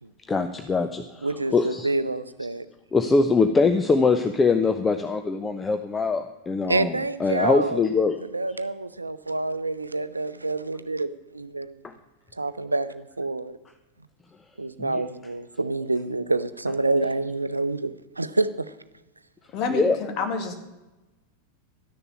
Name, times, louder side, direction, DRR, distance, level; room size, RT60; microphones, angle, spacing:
voice 1, 0.3-1.9 2.9-8.2 11.8-11.9 14.8-15.0 19.7-20.0, left 4 dB, 15° left, 8 dB, 0.7 m, -23 dB
voice 2, 1.2-2.7 6.7-7.9 8.3-11.8 12.3-13.6 14.6-18.7, right 2 dB, 80° right, 14 dB, 0.6 m, -27 dB
voice 3, 19.5-20.5, left 5 dB, 40° left, 5 dB, 2.2 m, -28 dB
12.5 x 6.8 x 8.7 m, 1.0 s
figure-of-eight pair, 90°, 0 cm